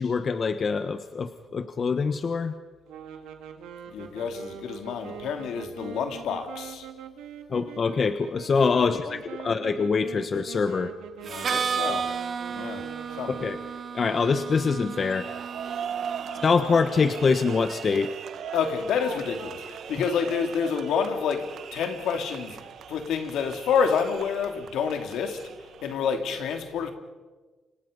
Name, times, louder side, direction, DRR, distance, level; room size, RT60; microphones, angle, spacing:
voice 1, 0.0-2.5 7.5-10.9 13.3-13.6 13.9-15.3 16.4-18.1, left 5 dB, 45° left, 1.3 m, -24 dB
sound 1, 2.9-13.8, right 8 dB, 90° right, 2.4 m, -43 dB
voice 2, 3.9-6.9 8.8-9.0 11.2-12.1 12.5-12.8 13.1-13.4 18.5-22.6 22.9-25.5 25.8-26.9, left 6 dB, 80° left, 3.2 m, -28 dB
Harmonica, 11.2-17.0, right 6 dB, 50° right, 1.6 m, -33 dB
sound 2, 14.9-26.0, right 8 dB, 65° right, 1.3 m, -39 dB
29.0 x 26.5 x 5.4 m
cardioid pair, 90°, 0 cm